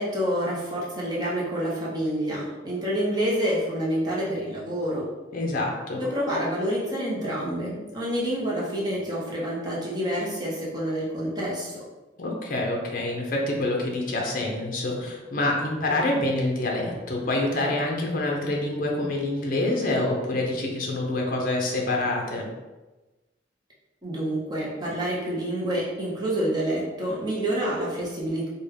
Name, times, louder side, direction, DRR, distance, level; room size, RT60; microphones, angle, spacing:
voice 1, 0.0-5.1 6.0-11.8 24.0-28.5, equal, 25° right, -6 dB, 0.8 m, -28 dB
voice 2, 5.3-6.0 12.2-22.5, left 2 dB, 50° left, 0 dB, 0.5 m, -26 dB
3.3 x 2.2 x 3.3 m, 1.1 s
head